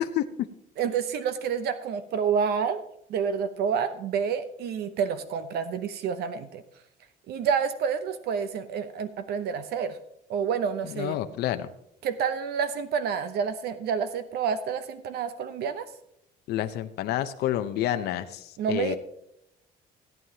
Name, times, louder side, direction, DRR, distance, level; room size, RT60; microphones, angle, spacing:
voice 1, 0.8-6.6 7.3-10.0 10.3-11.2 12.0-15.9 18.6-19.0, right 7 dB, 70° right, 11 dB, 0.7 m, -29 dB
voice 2, 11.0-11.7 16.5-19.0, left 12 dB, 75° left, 9 dB, 0.7 m, -29 dB
17.0 x 9.2 x 2.9 m, 0.77 s
cardioid pair, 110°, 17 cm